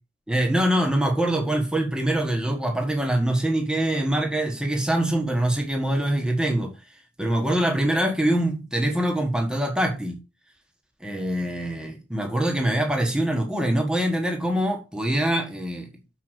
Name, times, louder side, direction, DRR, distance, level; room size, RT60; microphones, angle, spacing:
voice 1, 0.3-6.7 7.2-10.2 11.0-15.9, right 1 dB, 5° right, 1.5 m, -24 dB
6.6 x 5.1 x 6.3 m
head